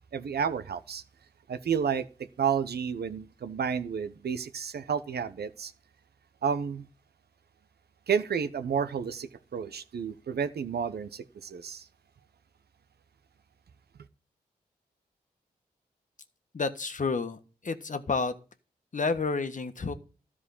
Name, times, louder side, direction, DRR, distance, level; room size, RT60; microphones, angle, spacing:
voice 1, 0.1-1.0 1.5-2.1 2.4-5.7 6.4-6.9 8.1-11.9, right 7 dB, 75° right, 0.9 m, -31 dB
voice 2, 16.5-18.3 18.9-19.9, left 4 dB, 50° left, 1.4 m, -30 dB
13.0 x 5.0 x 8.4 m
cardioid pair, 45°, 17 cm